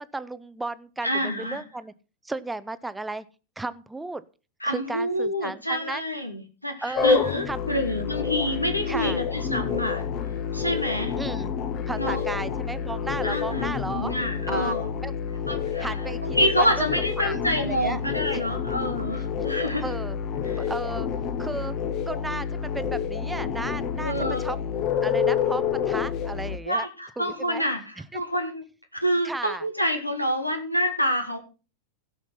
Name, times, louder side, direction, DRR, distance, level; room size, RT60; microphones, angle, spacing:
voice 1, 0.0-1.9 2.2-3.3 3.6-4.2 4.6-6.0 6.8-7.2 7.5-7.7 8.9-9.2 11.2-11.5 11.9-14.1 14.5-14.7 15.0-15.1 15.8-16.9 17.2-18.0 18.3-18.4 19.8-20.2 20.7-21.1 21.4-21.8 22.1-24.6 25.0-26.9 27.2-27.6 28.1-28.2 29.2-29.6, right 2 dB, 5° right, 14 dB, 0.7 m, -34 dB
voice 2, 1.0-1.6 4.6-10.1 10.5-11.2 12.0-12.3 13.2-14.9 15.5-19.8 20.5-20.7 24.0-24.4 26.7-28.6 29.0-31.4, equal, 90° left, 6 dB, 2.1 m, -27 dB
sound 1, 6.9-26.6, left 7 dB, 35° left, 1.2 m, -28 dB
16.5 x 5.9 x 5.6 m, 0.34 s
figure-of-eight pair, 90°, 0 cm